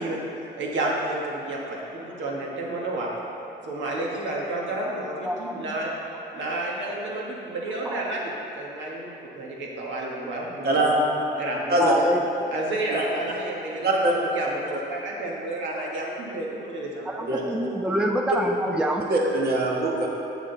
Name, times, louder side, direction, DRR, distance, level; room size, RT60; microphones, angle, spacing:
voice 1, 0.0-3.1 3.7-5.9 6.3-10.9 11.4-11.8 12.5-13.8 14.3-17.6, right 2 dB, 70° right, -3 dB, 1.5 m, -31 dB
voice 2, 5.2-5.6 7.8-8.0 11.8-12.2 17.1-19.0, right 1 dB, 5° right, 2 dB, 0.4 m, -26 dB
voice 3, 10.6-11.0 11.7-11.9 12.9-13.1 13.8-14.1 14.7-14.8 17.2-17.4 19.1-20.1, right 1 dB, 55° right, -2 dB, 1.4 m, -22 dB
7.2 x 6.6 x 3.9 m, 2.9 s
cardioid pair, 90°, 20 cm